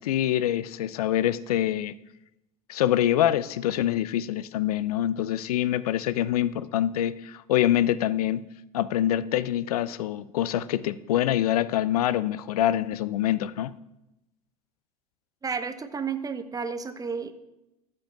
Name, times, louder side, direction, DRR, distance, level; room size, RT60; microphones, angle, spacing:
voice 1, 0.0-1.9 2.7-8.4 8.7-13.7, left 12 dB, 85° left, 17 dB, 0.4 m, -25 dB
voice 2, 15.4-17.3, right 5 dB, 20° right, 9 dB, 0.9 m, -32 dB
14.5 x 5.4 x 3.5 m, 0.91 s
hypercardioid pair, 80°, 19 cm